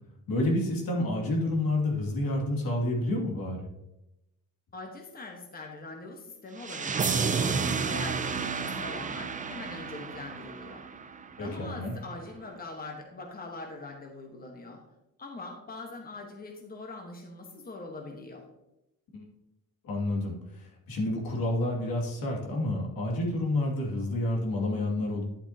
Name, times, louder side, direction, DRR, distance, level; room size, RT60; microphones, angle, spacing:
voice 1, 0.3-3.7 11.4-11.9 19.1-19.2 19.8-25.2, left 1 dB, 80° left, -1 dB, 2.5 m, -29 dB
voice 2, 4.7-7.6 7.8-10.8 11.4-14.8 15.2-18.4, left 3 dB, 25° left, 2 dB, 1.3 m, -42 dB
sound 1, 6.6-11.5, right 5 dB, 20° right, 0.5 m, -31 dB
10.0 x 8.1 x 2.9 m, 0.91 s
cardioid pair, 135°, 35 cm